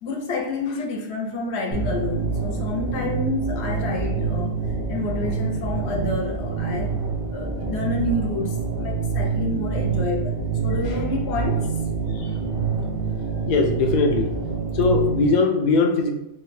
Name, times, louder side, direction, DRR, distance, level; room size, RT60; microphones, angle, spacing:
voice 1, 0.0-6.9 7.3-11.7, left 3 dB, 75° left, 1 dB, 0.9 m, -29 dB
sound 1, 1.7-15.3, right 5 dB, 35° right, 0.3 m, -26 dB
voice 2, 12.1-12.4 13.5-14.3 14.7-16.1, left 4 dB, 60° left, 1 dB, 0.5 m, -21 dB
2.7 x 2.1 x 3.9 m, 0.87 s
omnidirectional pair, 1.2 m